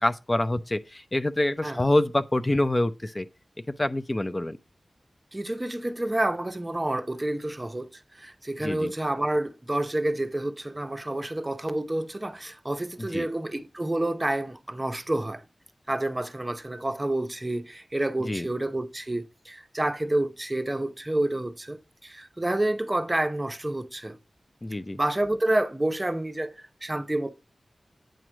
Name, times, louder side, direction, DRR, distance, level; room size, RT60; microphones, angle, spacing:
voice 1, 0.0-3.3 3.8-4.6 8.6-8.9 13.1-13.3 18.3-18.5 24.6-25.0, left 1 dB, 30° left, 0.5 m, -26 dB
voice 2, 5.3-15.4 15.9-24.2 25.0-27.3, right 1 dB, 25° right, 0.8 m, -29 dB
8.9 x 3.0 x 6.1 m
cardioid pair, 50°, 0 cm